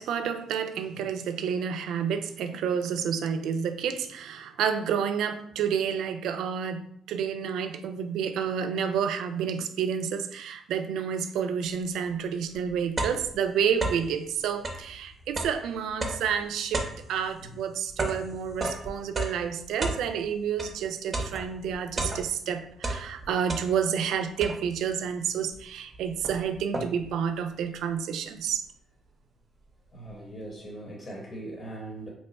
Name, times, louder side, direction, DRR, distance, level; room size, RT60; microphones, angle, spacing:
voice 1, 0.0-28.6, right 7 dB, 80° right, 0.3 m, -30 dB
sound 1, 12.1-12.2 12.5-14.2 14.5-20.8 21.1-22.5 22.8-24.0 24.4-24.9 25.6-25.7 25.9-27.2, right 2 dB, 35° right, 0.6 m, -34 dB
voice 2, 29.9-32.1, right 1 dB, 40° left, 0.9 m, -40 dB
3.0 x 2.2 x 4.0 m
cardioid pair, 90°, 0 cm